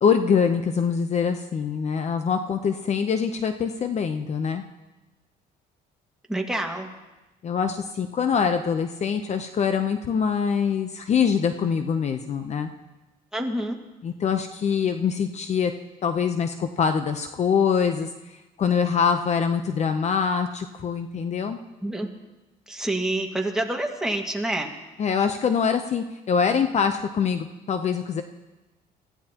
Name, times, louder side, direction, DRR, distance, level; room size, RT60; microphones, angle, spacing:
voice 1, 0.0-4.6 7.4-12.7 14.0-15.7 16.0-18.1 18.6-21.6 25.0-28.2, left 6 dB, 40° left, 7 dB, 0.8 m, -24 dB
voice 2, 6.3-6.9 13.3-13.8 21.8-22.1 22.7-24.7, right 1 dB, 5° right, 1 dB, 1.9 m, -27 dB
23.0 x 15.0 x 3.0 m, 1.1 s
cardioid pair, 110°, 17 cm